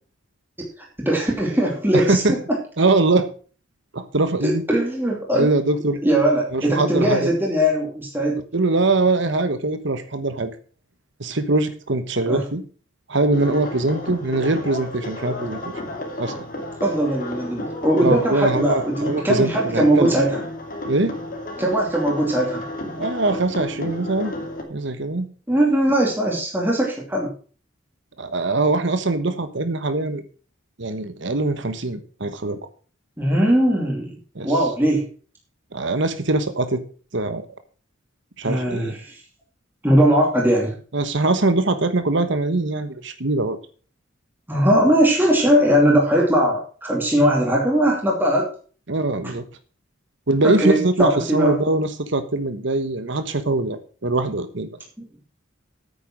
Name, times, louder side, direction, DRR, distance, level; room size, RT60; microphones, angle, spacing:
voice 1, 0.8-2.4 4.4-5.5 6.0-8.4 12.3-12.4 16.8-20.4 21.6-22.7 25.5-27.3 33.2-34.1 34.4-35.1 38.4-39.2 39.8-40.7 44.5-48.5 50.4-51.5, right 1 dB, 10° right, -3 dB, 2.9 m, -20 dB
voice 2, 1.9-2.4 2.8-3.3 3.9-4.6 5.3-6.0 6.5-7.3 8.5-10.5 11.2-12.6 13.1-15.6 16.2-16.3 18.0-20.2 20.9-21.1 23.0-24.3 24.7-25.3 28.2-30.2 30.8-32.6 34.3-34.6 35.7-36.8 37.1-37.5 38.4-38.9 40.9-43.6 48.9-49.4 50.3-54.7, right 2 dB, 65° right, 10 dB, 1.2 m, -22 dB
sound 1, 13.3-24.6, left 1 dB, 45° left, 2.7 m, -32 dB
9.3 x 9.3 x 6.3 m, 0.40 s
head